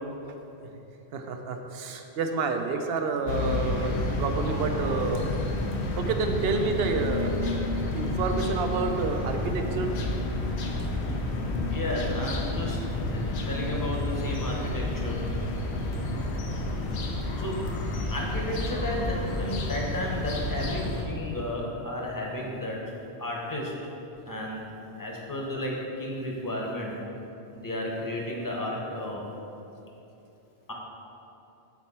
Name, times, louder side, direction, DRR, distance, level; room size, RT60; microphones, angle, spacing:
voice 1, 1.1-5.3 5.9-9.9, right 4 dB, 70° right, 5 dB, 0.8 m, -29 dB
sound 1, 3.3-21.0, left 2 dB, 85° left, 1.0 m, -30 dB
sound 2, 10.6-14.7 14.9-15.1, left 1 dB, 50° left, 0.8 m, -41 dB
voice 2, 11.7-12.8 13.1-13.2 13.5-15.2 17.4-17.7 18.1-22.8 23.2-23.7 24.2-24.7 25.0-27.0 27.5-29.2 30.7-30.8, left 1 dB, 20° left, -2 dB, 0.9 m, -33 dB
7.3 x 4.3 x 4.2 m, 3.0 s
omnidirectional pair, 1.1 m